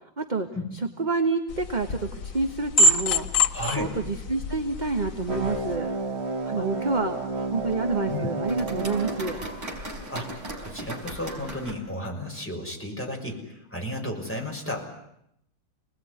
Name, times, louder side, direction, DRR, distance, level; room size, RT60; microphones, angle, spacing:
voice 1, 0.2-0.5 1.0-3.4 3.8-5.9 6.4-7.2 7.5-9.4, right 3 dB, 25° right, 5 dB, 1.4 m, -28 dB
sound 1, 1.5-5.8, left 1 dB, 45° left, 1.8 m, -26 dB
voice 2, 3.5-3.9 6.5-6.7 8.1-8.3 10.1-10.3 10.6-14.9, left 1 dB, 5° left, 0 dB, 6.0 m, -33 dB
sound 2, 4.8-11.7, right 1 dB, 45° right, 5.5 m, -40 dB
sound 3, 5.3-10.3, right 3 dB, 85° right, 3.3 m, -31 dB
29.5 x 20.0 x 9.6 m, 0.78 s
omnidirectional pair, 2.2 m